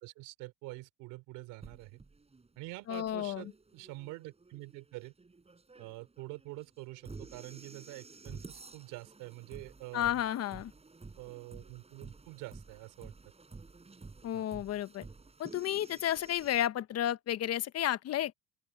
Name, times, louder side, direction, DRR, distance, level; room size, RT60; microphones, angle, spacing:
voice 1, 0.0-2.0 2.6-5.1 5.8-10.2 11.2-13.1 14.3-14.4, right 21 dB, 80° right, 3.6 m, -46 dB
sound 1, 1.6-16.7, right 3 dB, 20° right, 7.1 m, -52 dB
voice 2, 2.9-3.4 9.9-10.7 14.2-15.1 15.4-18.3, left 12 dB, 50° left, 1.0 m, -32 dB
open air
supercardioid pair, 95°, 31 cm